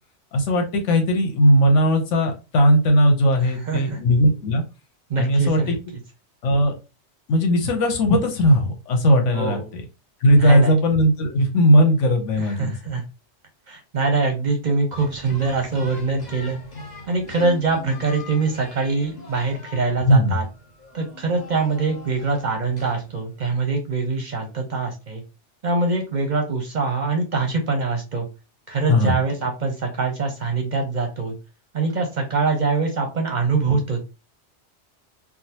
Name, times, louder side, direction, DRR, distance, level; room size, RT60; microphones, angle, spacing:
voice 1, 0.3-4.6 5.2-5.7 6.4-6.7 7.3-9.8 10.2-12.7 20.0-20.4 28.9-29.2, equal, 85° left, 4 dB, 1.1 m, -18 dB
voice 2, 3.4-4.0 5.1-5.7 9.3-9.7 10.3-10.7 12.4-13.0 13.7-16.6 17.1-20.4 20.9-25.2 25.6-28.3 28.7-31.3 31.7-34.0, right 4 dB, 50° right, 2 dB, 0.6 m, -24 dB
sound 1, 14.9-23.5, left 2 dB, 40° left, 0.8 m, -41 dB
3.5 x 2.0 x 2.8 m, 0.30 s
omnidirectional pair, 1.2 m